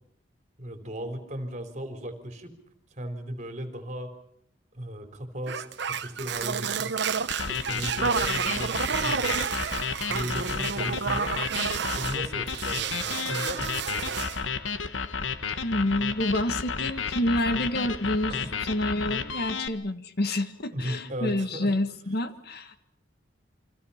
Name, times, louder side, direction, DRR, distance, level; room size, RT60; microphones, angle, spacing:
voice 1, 0.6-2.5 2.9-4.1 4.7-6.9 7.5-9.3 10.0-11.4 11.9-14.2 18.3-18.5 20.7-21.7, equal, 40° right, 7 dB, 4.1 m, -36 dB
sound 1, 5.5-12.2 12.5-14.4, right 6 dB, 65° right, 1.1 m, -30 dB
sound 2, 7.3-19.7, left 5 dB, 90° left, 1.5 m, -32 dB
voice 2, 15.6-18.4 18.7-22.8, left 1 dB, 55° left, 10 dB, 1.6 m, -28 dB
29.0 x 25.0 x 5.8 m, 0.70 s
head